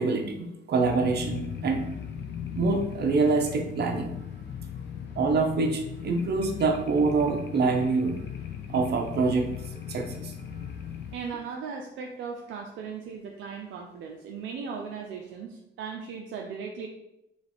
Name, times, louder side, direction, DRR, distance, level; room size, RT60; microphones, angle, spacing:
voice 1, 0.0-1.8 2.5-4.1 5.2-8.2 8.7-10.3, right 4 dB, 55° right, 3 dB, 0.8 m, -26 dB
sound 1, 0.8-11.2, left 8 dB, 65° left, 0.7 m, -38 dB
voice 2, 11.1-16.9, right 5 dB, 75° right, 1 dB, 0.5 m, -37 dB
3.2 x 3.1 x 4.1 m, 0.87 s
cardioid pair, 90°, 20 cm